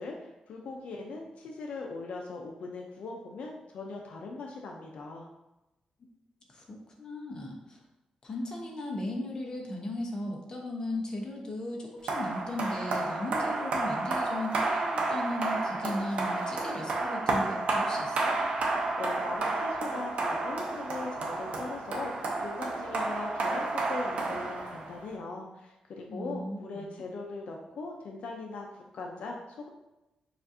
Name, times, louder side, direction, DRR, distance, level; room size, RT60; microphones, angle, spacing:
voice 1, 0.0-5.3 19.0-29.7, left 3 dB, 75° left, 0 dB, 0.6 m, -40 dB
voice 2, 6.5-7.8 8.2-18.4 26.1-26.9, left 1 dB, 35° left, 0 dB, 0.8 m, -37 dB
sound 1, 12.1-25.1, right 2 dB, 65° right, 0.8 m, -31 dB
6.7 x 2.5 x 2.7 m, 0.97 s
wide cardioid pair, 155°, 2 cm